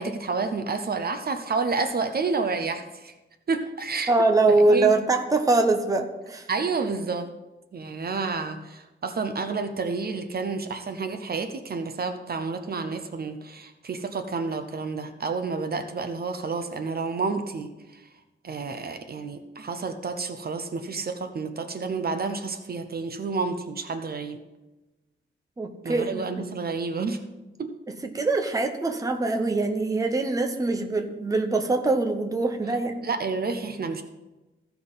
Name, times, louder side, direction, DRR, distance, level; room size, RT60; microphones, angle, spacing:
voice 1, 0.0-3.1 3.5-4.1 4.7-4.9 6.5-7.3 7.7-18.0 18.4-24.4 25.8-27.2 27.6-27.7 33.0-34.0, right 4 dB, 50° right, 7 dB, 0.7 m, -30 dB
voice 2, 4.1-6.5 25.6-26.3 28.0-33.0, right 3 dB, 15° right, 5 dB, 0.8 m, -23 dB
15.0 x 5.8 x 4.0 m, 1.1 s
wide cardioid pair, 175°, 21 cm